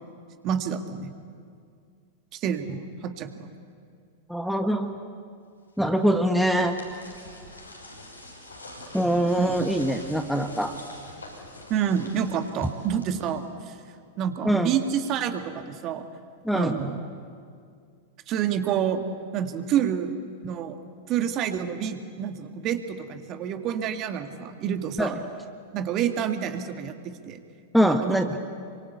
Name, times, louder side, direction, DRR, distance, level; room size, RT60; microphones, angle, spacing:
voice 1, 0.4-1.1 2.3-3.5 9.4-9.6 11.7-13.8 14.2-16.0 16.5-17.0 18.3-19.0 19.3-20.2 20.4-20.8 21.1-25.2 25.7-27.0 27.3-27.4 27.8-28.3, right 8 dB, 35° right, 6 dB, 2.1 m, -28 dB
voice 2, 4.3-5.0 5.8-6.8 8.9-10.7 14.4-14.7 16.4-16.8 25.0-25.2 27.7-28.3, equal, ahead, 6 dB, 1.4 m, -23 dB
sound 1, 5.8-13.6, left 1 dB, 85° left, 6.1 m, -45 dB
28.0 x 24.5 x 8.3 m, 2.2 s
figure-of-eight pair, 95°, 0 cm